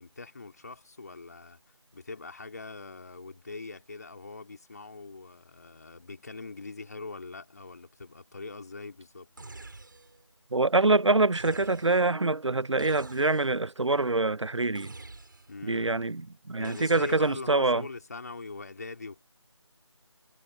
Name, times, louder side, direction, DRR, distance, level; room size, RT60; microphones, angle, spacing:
voice 1, 0.0-1.6 1.9-9.6 15.5-16.1 16.6-19.2, left 3 dB, 35° left, 3.2 m, -42 dB
sound 1, 9.4-10.3 11.3-12.2 12.8-13.7 14.8-15.7 16.6-17.6, right 3 dB, 45° right, 7.3 m, -47 dB
voice 2, 10.5-14.9 15.6-16.2 16.5-17.8, right 2 dB, 75° right, 0.7 m, -25 dB
figure-of-eight pair, 165°, 16 cm